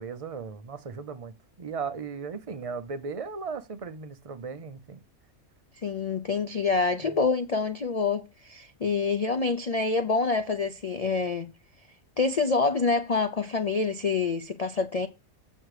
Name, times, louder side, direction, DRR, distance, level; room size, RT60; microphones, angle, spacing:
voice 1, 0.0-5.0 7.0-7.2, right 5 dB, 55° right, 0.3 m, -37 dB
voice 2, 5.8-11.5 12.2-15.1, left 4 dB, 85° left, 0.3 m, -26 dB
7.8 x 6.4 x 4.8 m
omnidirectional pair, 1.5 m